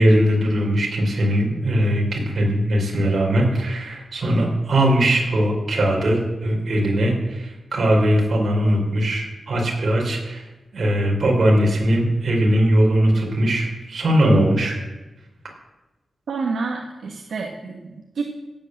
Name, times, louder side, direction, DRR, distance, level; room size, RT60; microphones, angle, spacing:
voice 1, 0.0-14.8, right 1 dB, 50° right, -1 dB, 4.7 m, -20 dB
voice 2, 16.3-18.3, right 4 dB, 70° right, 1 dB, 1.6 m, -29 dB
16.5 x 8.4 x 8.0 m, 1.1 s
wide cardioid pair, 155°, 0 cm